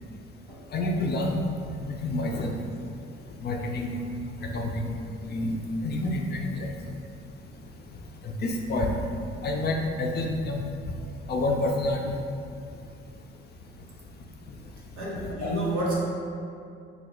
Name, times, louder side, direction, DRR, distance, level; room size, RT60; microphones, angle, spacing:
voice 1, 0.7-1.4 1.8-2.5 3.4-4.0 4.4-5.0 5.3-6.7 8.2-8.9 9.4-10.6 11.3-12.1 15.1-15.5, left 2 dB, 30° left, 1 dB, 0.4 m, -28 dB
voice 2, 15.0-16.0, right 1 dB, 90° right, -5 dB, 0.6 m, -29 dB
2.8 x 2.0 x 3.8 m, 2.4 s
figure-of-eight pair, 45°, 35 cm